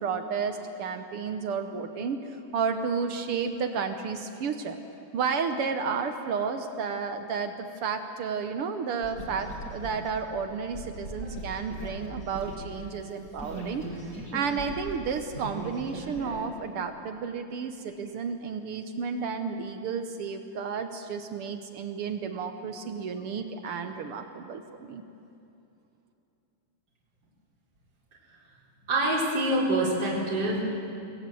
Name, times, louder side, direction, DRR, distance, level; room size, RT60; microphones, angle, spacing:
voice 1, 0.0-4.8 5.1-25.0, right 5 dB, 75° right, 7 dB, 1.3 m, -32 dB
sound 1, 9.0-12.8 13.4-16.4, right 1 dB, 20° left, 7.0 m, -39 dB
voice 2, 28.9-30.7, right 1 dB, 30° right, -7 dB, 4.5 m, -25 dB
27.5 x 20.5 x 7.7 m, 2.8 s
omnidirectional pair, 4.0 m